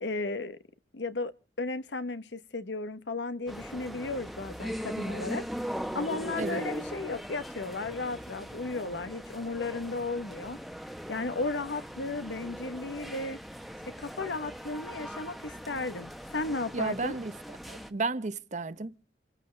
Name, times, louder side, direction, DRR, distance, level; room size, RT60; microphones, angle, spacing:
voice 1, 0.0-0.6 0.9-1.3 1.6-5.4 5.9-10.6 11.1-13.4 14.0-17.2, left 3 dB, 85° left, 1.1 m, -34 dB
sound 1, 3.5-17.9, equal, ahead, 1.0 m, -40 dB
voice 2, 16.7-17.3 17.7-19.0, right 3 dB, 45° right, 0.8 m, -33 dB
28.5 x 14.0 x 3.3 m
head